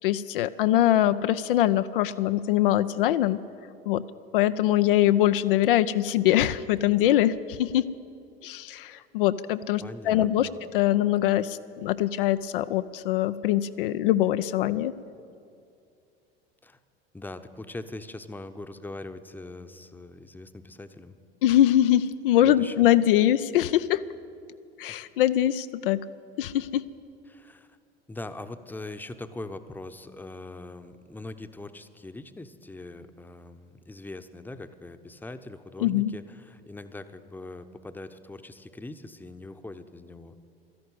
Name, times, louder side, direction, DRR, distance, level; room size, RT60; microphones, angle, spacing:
voice 1, 0.0-3.4 3.9-4.0 4.3-7.9 8.4-10.5 10.7-14.9 21.4-24.0 24.8-26.0 26.4-26.9 35.8-36.1, left 12 dB, 65° left, 12 dB, 0.5 m, -23 dB
voice 2, 9.8-10.6 16.6-16.8 17.1-21.2 22.4-22.9 27.3-27.8 28.1-40.4, left 2 dB, 5° left, 10 dB, 0.8 m, -42 dB
13.0 x 11.5 x 9.9 m, 2.5 s
figure-of-eight pair, 70°, 29 cm